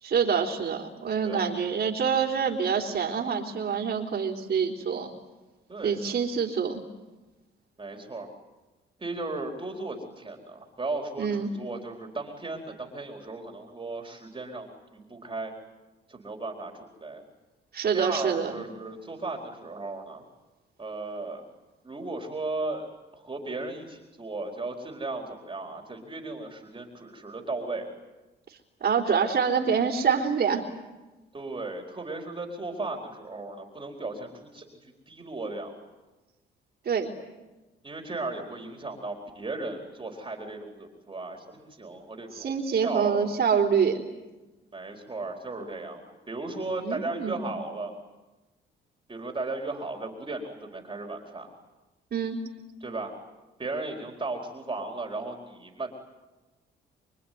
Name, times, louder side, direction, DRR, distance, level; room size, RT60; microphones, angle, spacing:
voice 1, 0.0-5.1 5.8-6.8 11.2-11.5 17.7-18.5 28.8-30.7 36.9-37.1 42.3-44.0 46.7-47.5 52.1-52.4, right 6 dB, 55° right, -4 dB, 3.8 m, -26 dB
voice 2, 7.8-8.3 9.0-15.5 16.1-17.2 17.9-20.2 20.8-21.5 21.8-27.9 31.3-35.8 37.8-43.3 44.7-46.0 46.3-47.9 49.1-51.5 52.8-53.1 53.6-55.9, right 3 dB, 25° right, 2 dB, 4.4 m, -36 dB
26.5 x 24.0 x 9.5 m, 1.1 s
cardioid pair, 90°, 20 cm